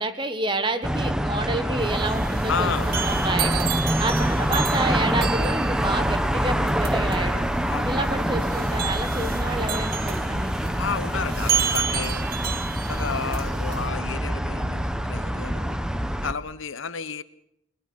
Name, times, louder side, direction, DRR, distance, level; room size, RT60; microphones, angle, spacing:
voice 1, 0.0-3.7 4.0-7.5 7.8-10.7, right 2 dB, 25° right, 9 dB, 1.5 m, -29 dB
sound 1, 0.8-16.3, equal, 5° right, 0.9 m, -25 dB
sound 2, 1.8-13.9, right 7 dB, 50° right, 1.2 m, -31 dB
voice 2, 2.5-3.0 7.7-7.9 10.7-12.3 12.9-15.8 16.2-17.2, left 5 dB, 85° left, 15 dB, 0.9 m, -31 dB
Bowed string instrument, 7.1-11.1, left 1 dB, 15° left, 4.2 m, -50 dB
22.0 x 20.5 x 6.3 m, 0.77 s
head